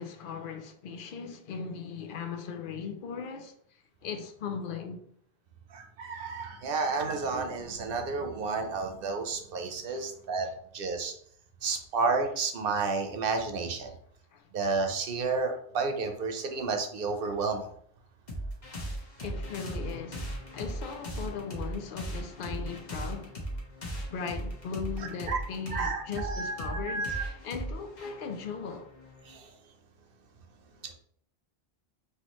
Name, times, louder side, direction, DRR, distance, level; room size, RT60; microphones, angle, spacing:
voice 1, 0.0-3.5 4.0-5.0 9.9-10.1 10.4-10.5 11.6-11.8 13.9-14.0 14.3-14.4 19.2-23.4 24.1-28.9, left 6 dB, 60° left, 0.7 m, -38 dB
voice 2, 5.7-10.5 10.7-11.1 11.6-13.9 14.5-17.6 25.3-25.4 25.7-27.2, right 4 dB, 65° right, 0.9 m, -31 dB
sound 1, 18.3-29.4, right 1 dB, 45° left, 1.1 m, -38 dB
5.8 x 2.9 x 3.0 m
omnidirectional pair, 1.1 m